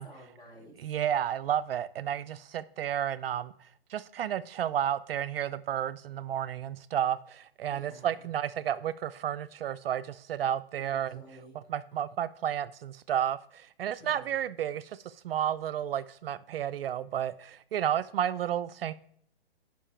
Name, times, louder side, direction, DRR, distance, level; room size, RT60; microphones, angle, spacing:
voice 1, 0.0-0.8 7.7-8.2 10.8-11.5 14.0-14.3, equal, 10° left, 1.6 m, -51 dB
voice 2, 0.8-11.2 11.5-18.9, right 10 dB, 65° right, 0.5 m, -32 dB
9.9 x 5.2 x 4.4 m
hypercardioid pair, 140°, 31 cm